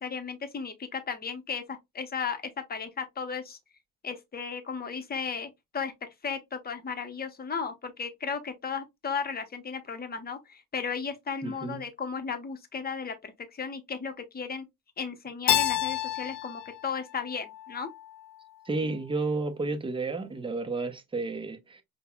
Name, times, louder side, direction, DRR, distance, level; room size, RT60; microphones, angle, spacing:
voice 1, 0.0-2.4 2.7-3.6 4.0-14.6 15.0-17.9, left 6 dB, 25° left, 0.8 m, -35 dB
voice 2, 11.4-11.8 18.7-21.8, right 3 dB, 15° right, 0.7 m, -31 dB
Keyboard (musical), 15.5-18.3, left 12 dB, 80° left, 0.5 m, -30 dB
5.3 x 2.2 x 2.2 m
cardioid pair, 105°, 34 cm